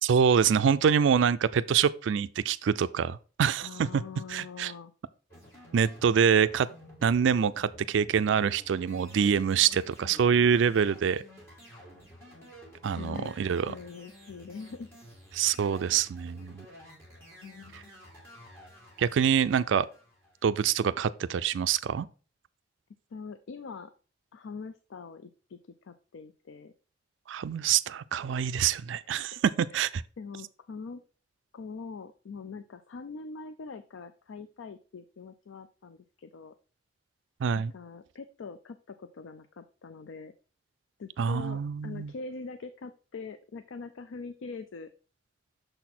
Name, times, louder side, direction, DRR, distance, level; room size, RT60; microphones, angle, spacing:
voice 1, 0.0-4.0 4.3-4.7 5.7-6.7 7.0-11.2 12.8-13.7 15.3-16.7 19.0-19.9 20.4-22.1 27.3-30.0 37.4-37.7 41.2-42.1, right 7 dB, 75° right, 0.3 m, -25 dB
voice 2, 3.6-4.9 9.7-10.8 13.0-13.3 13.7-14.9 17.4-17.9 23.1-23.9 24.3-26.7 29.1-29.4 29.7-29.9 30.2-31.0 31.5-36.5 37.5-40.3 41.0-44.9, left 4 dB, 80° left, 0.4 m, -43 dB
sound 1, 5.3-20.7, equal, 15° left, 2.2 m, -52 dB
6.6 x 4.1 x 4.2 m
head